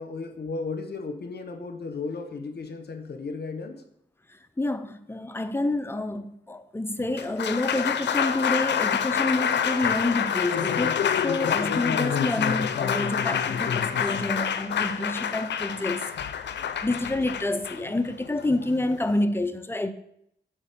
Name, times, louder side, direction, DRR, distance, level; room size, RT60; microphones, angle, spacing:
voice 1, 0.0-3.8, left 4 dB, 65° left, 0.9 m, -35 dB
voice 2, 4.3-16.1 16.8-19.9, left 2 dB, 15° left, 0.6 m, -28 dB
Applause, 7.0-19.2, left 8 dB, 80° left, 0.5 m, -27 dB
7.3 x 4.9 x 5.0 m
cardioid pair, 60°, 18 cm